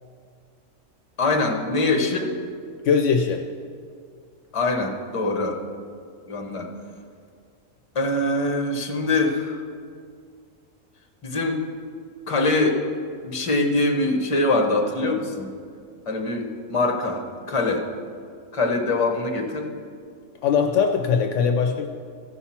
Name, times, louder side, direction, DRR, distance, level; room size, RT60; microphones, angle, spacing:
voice 1, 1.2-2.3 4.5-5.6 6.3-6.7 7.9-9.6 11.2-11.6 12.3-12.8 13.2-15.5 16.1-17.8 18.5-19.7, left 2 dB, 25° left, 3 dB, 0.9 m, -23 dB
voice 2, 2.8-3.4 20.4-21.9, left 6 dB, 70° left, 4 dB, 0.9 m, -20 dB
15.0 x 5.8 x 4.3 m, 2.2 s
omnidirectional pair, 1.4 m